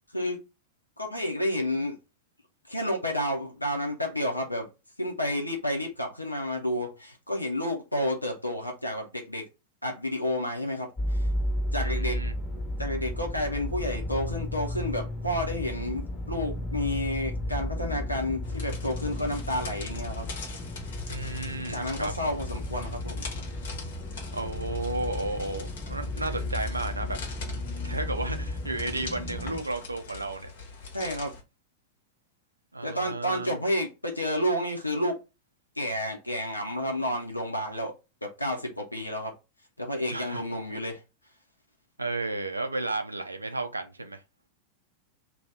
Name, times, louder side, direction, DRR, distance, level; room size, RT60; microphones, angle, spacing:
voice 1, 1.0-2.0 2.7-4.7 5.0-9.5 9.8-11.3 11.7-12.2 12.8-20.3 21.7-23.3 30.9-31.3 32.8-35.2 35.8-37.9 38.2-39.3 39.8-41.0, left 1 dB, 85° left, 0.7 m, -30 dB
sound 1, 11.0-29.6, left 1 dB, 15° left, 1.1 m, -33 dB
voice 2, 11.8-12.3 21.1-22.4 24.3-27.2 27.8-30.5 32.7-33.6 40.1-40.4 42.0-44.2, right 2 dB, 80° right, 0.5 m, -33 dB
sound 2, 18.4-31.4, left 4 dB, 60° left, 1.0 m, -43 dB
2.7 x 2.3 x 3.5 m
figure-of-eight pair, 90°, 0 cm